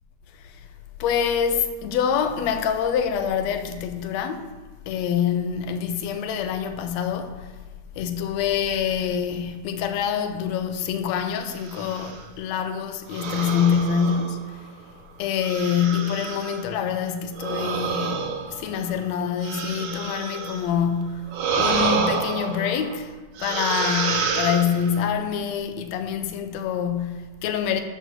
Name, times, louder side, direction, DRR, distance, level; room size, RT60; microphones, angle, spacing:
voice 1, 1.0-4.5 4.9-7.5 8.0-14.6 15.2-23.1 23.4-27.8, left 7 dB, 75° left, 2.0 m, -26 dB
sound 1, 11.5-12.2 13.1-14.7 15.4-16.6 17.3-20.7 21.3-23.0 23.4-25.1, right 5 dB, 80° right, 2.4 m, -28 dB
12.5 x 4.3 x 6.7 m
omnidirectional pair, 3.3 m